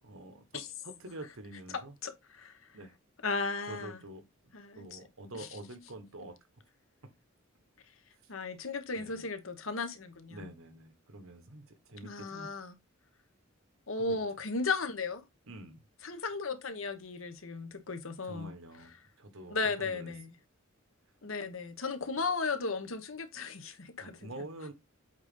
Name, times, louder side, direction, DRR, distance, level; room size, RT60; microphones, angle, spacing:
voice 1, 0.0-2.0 2.7-3.0 3.7-4.2 4.7-6.4 8.9-9.3 10.3-12.5 14.0-14.3 15.4-15.8 18.2-20.1 24.0-24.7, right 2 dB, 80° right, 1.5 m, -47 dB
voice 2, 2.0-2.6 3.2-4.0 4.5-5.0 5.3-5.5 8.3-10.5 12.0-12.7 13.9-15.2 16.0-18.5 19.5-20.3 21.2-24.3, left 4 dB, 75° left, 1.1 m, -35 dB
8.0 x 4.0 x 3.7 m
head